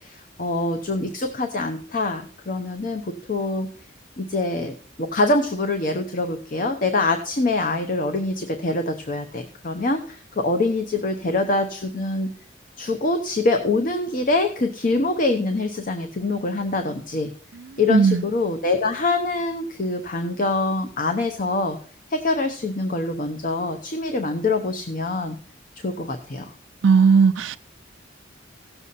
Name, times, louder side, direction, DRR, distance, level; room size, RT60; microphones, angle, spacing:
voice 1, 0.0-3.7 4.2-12.3 12.8-17.3 17.8-21.8 22.1-25.4 25.8-26.5, left 2 dB, 45° left, 0.9 m, -24 dB
voice 2, 17.5-18.2 26.8-27.6, right 5 dB, 80° right, 0.5 m, -17 dB
16.5 x 7.0 x 4.1 m
head